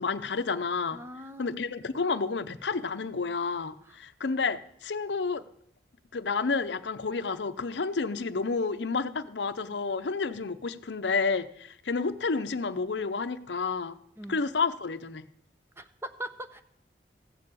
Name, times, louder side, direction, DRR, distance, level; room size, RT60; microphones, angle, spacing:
voice 1, 0.0-1.0 1.4-5.4 6.1-14.0 14.3-15.2, left 4 dB, 80° left, 12 dB, 0.7 m, -30 dB
voice 2, 0.9-1.6 3.9-4.0 14.2-14.4 15.8-16.6, right 1 dB, 15° right, 9 dB, 0.8 m, -41 dB
15.5 x 6.8 x 8.5 m, 0.69 s
head